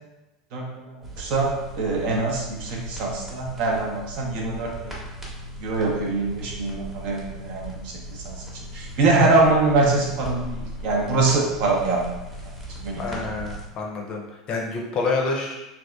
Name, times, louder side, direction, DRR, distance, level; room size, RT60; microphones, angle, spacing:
voice 1, 0.5-5.0 5.6-8.4 8.7-12.0 12.8-13.0, right 3 dB, 50° right, -1 dB, 0.6 m, -23 dB
sound 1, 1.0-13.6, right 1 dB, 10° right, 0.8 m, -38 dB
voice 2, 13.0-14.2 14.5-15.7, left 3 dB, 35° left, 0 dB, 0.6 m, -27 dB
3.4 x 2.4 x 2.3 m, 1.0 s
figure-of-eight pair, 75°, 2 cm